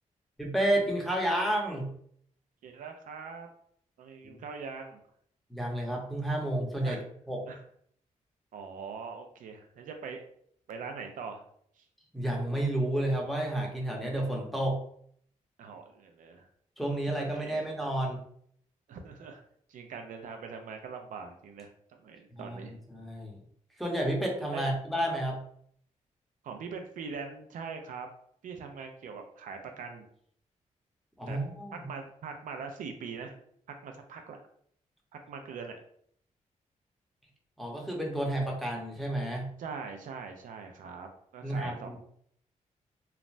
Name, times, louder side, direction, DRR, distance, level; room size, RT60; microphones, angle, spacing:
voice 1, 0.4-1.9 4.2-4.4 5.5-7.0 7.3-7.4 12.1-14.8 16.8-18.2 22.3-22.6 22.9-23.4 23.8-25.4 31.2-31.9 37.6-39.5 41.4-42.0, right 1 dB, ahead, -2 dB, 0.8 m, -31 dB
voice 2, 2.6-3.5 4.0-5.0 6.8-7.0 7.5-7.6 8.5-10.2 10.7-11.4 11.8-11.9 15.6-16.5 17.3-17.7 18.9-19.4 19.7-21.7 22.0-22.7 24.5-24.7 26.4-28.1 28.4-30.1 31.3-31.4 31.9-33.4 33.8-34.4 35.3-35.8 39.6-42.0, right 5 dB, 80° right, 4 dB, 0.4 m, -42 dB
3.2 x 2.0 x 2.5 m, 0.64 s
cardioid pair, 85°, 13 cm